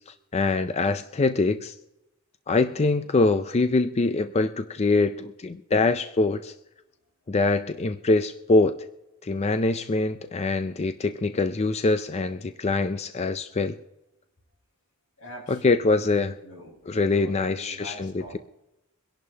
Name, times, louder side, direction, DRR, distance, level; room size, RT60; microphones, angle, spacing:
voice 1, 0.1-1.7 2.5-6.5 7.3-8.8 9.2-13.8 15.5-16.4 16.9-18.4, left 3 dB, 30° left, 9 dB, 0.5 m, -24 dB
voice 2, 15.2-15.9 16.2-18.4, left 1 dB, 85° left, -2 dB, 5.5 m, -44 dB
24.0 x 11.0 x 2.9 m, 0.91 s
head